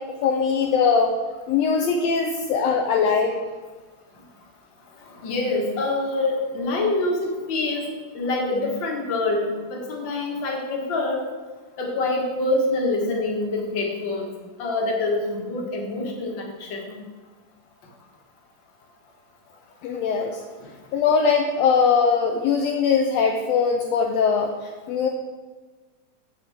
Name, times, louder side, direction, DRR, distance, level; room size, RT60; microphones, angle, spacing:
voice 1, 0.1-1.1 1.5-3.4 19.8-20.4 20.9-25.1, left 5 dB, 75° left, 2 dB, 1.6 m, -21 dB
voice 2, 5.0-7.9 8.1-11.2 11.8-14.3 14.6-17.0 20.6-20.7, left 2 dB, 45° left, 0 dB, 1.9 m, -26 dB
8.6 x 8.0 x 3.5 m, 1.3 s
omnidirectional pair, 3.3 m